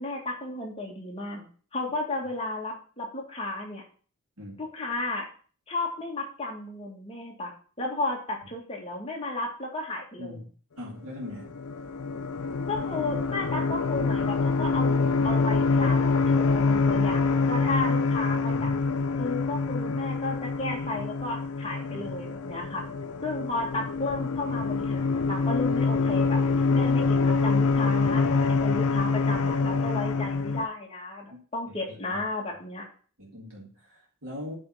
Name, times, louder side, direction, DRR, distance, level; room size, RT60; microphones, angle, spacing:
voice 1, 0.0-3.8 4.6-5.3 5.7-7.5 7.8-10.4 12.7-18.7 19.2-22.8 23.2-26.4 26.7-32.8, left 2 dB, 25° left, 0 dB, 1.7 m, -33 dB
voice 2, 10.8-11.5 18.4-18.8 21.9-22.1 31.3-31.4 31.9-32.2 33.2-34.6, left 1 dB, 75° right, -3 dB, 2.2 m, -41 dB
sound 1, 11.2-30.7, left 4 dB, 85° left, 0.6 m, -25 dB
9.2 x 3.6 x 5.5 m, 0.41 s
head